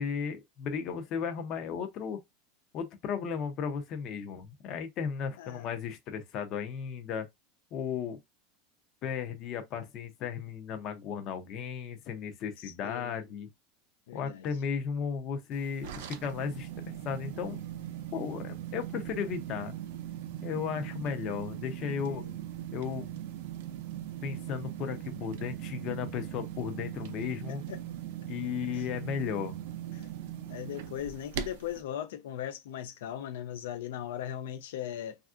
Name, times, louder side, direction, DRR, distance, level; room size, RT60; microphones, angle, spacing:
voice 1, 0.0-2.2 2.7-7.3 7.7-8.2 9.0-13.5 14.1-17.6 18.1-19.7 20.4-22.2 22.7-23.2 24.2-27.6 28.3-29.6, left 7 dB, 30° left, 0.5 m, -35 dB
voice 2, 12.6-13.2 14.1-14.5 22.1-22.4 27.7-27.8 28.7-28.9 29.9-30.1 30.5-35.2, left 10 dB, 85° left, 0.4 m, -39 dB
sound 1, 15.5-31.8, right 11 dB, 60° right, 0.5 m, -40 dB
3.4 x 2.4 x 2.4 m
supercardioid pair, 180°, 0 cm